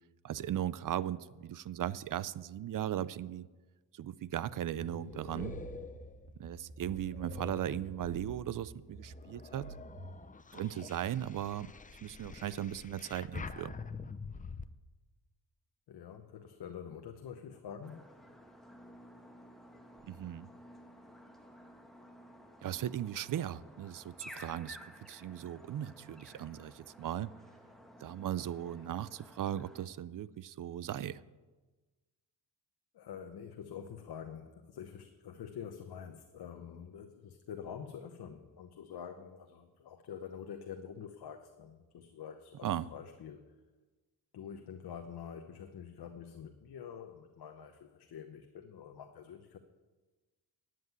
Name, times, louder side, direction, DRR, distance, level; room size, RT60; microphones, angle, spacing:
voice 1, 0.2-3.5 3.9-5.6 6.4-9.7 10.5-11.7 12.0-13.7 20.1-20.5 22.6-24.8 25.1-27.3 28.0-31.2 42.6-42.9, right 11 dB, 50° right, 19 dB, 0.5 m, -37 dB
sound 1, 4.2-8.5 9.0-14.7, left 5 dB, 20° left, 0.5 m, -47 dB
sound 2, 4.8-10.2, right 3 dB, 75° right, 1.7 m, -48 dB
voice 2, 15.9-18.1 32.9-43.4 44.3-49.6, left 7 dB, 60° left, 6 dB, 1.0 m, -47 dB
sound 3, 17.8-29.9, equal, ahead, 1.5 m, -54 dB
9.5 x 7.7 x 9.2 m, 1.2 s
cardioid pair, 85°, 43 cm